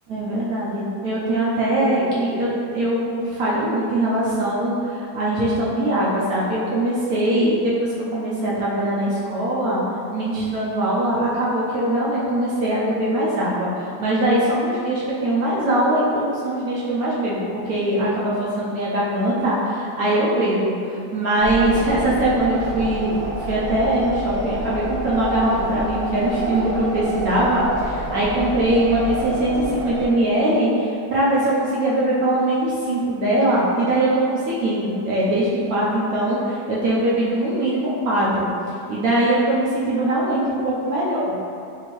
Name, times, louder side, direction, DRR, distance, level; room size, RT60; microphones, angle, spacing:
voice 1, 0.1-9.8 10.1-23.1 23.5-38.5 38.9-41.3, right 1 dB, 70° right, -7 dB, 0.9 m, -21 dB
sound 1, 21.4-30.1, right 1 dB, 85° right, 1.4 m, -28 dB
4.3 x 2.8 x 3.0 m, 2.5 s
omnidirectional pair, 1.9 m